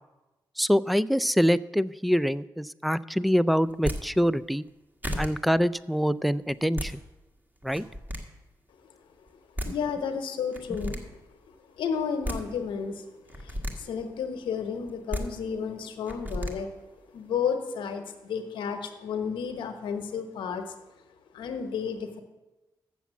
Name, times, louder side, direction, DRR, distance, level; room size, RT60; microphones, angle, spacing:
voice 1, 0.6-4.6 5.2-7.0 7.6-7.8, equal, ahead, 18 dB, 0.3 m, -25 dB
sound 1, 3.7-4.0 4.7-4.8 5.0-5.3 6.5-6.9 7.6-8.2 9.3-9.4 9.6-9.7 10.5-11.0 12.0-12.4 13.3-13.7 14.9-15.2 16.1-16.5, equal, 20° right, 1.6 m, -32 dB
voice 2, 9.6-11.0 11.5-13.0 13.3-16.7 17.1-20.7 21.3-22.2, left 6 dB, 90° left, 7 dB, 0.9 m, -32 dB
7.3 x 6.9 x 7.3 m, 1.1 s
cardioid pair, 60°, 8 cm